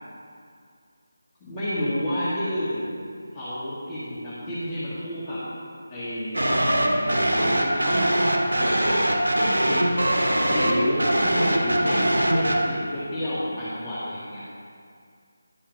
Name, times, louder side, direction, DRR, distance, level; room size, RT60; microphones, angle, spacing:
voice 1, 1.4-2.9 3.3-5.4 5.9-9.4 9.7-9.8 10.4-14.4, equal, 15° left, -14 dB, 1.8 m, -30 dB
sound 1, 6.3-12.6, right 1 dB, 80° right, 1.1 m, -22 dB
11.0 x 4.4 x 5.7 m, 2.2 s
figure-of-eight pair, 160°, 0 cm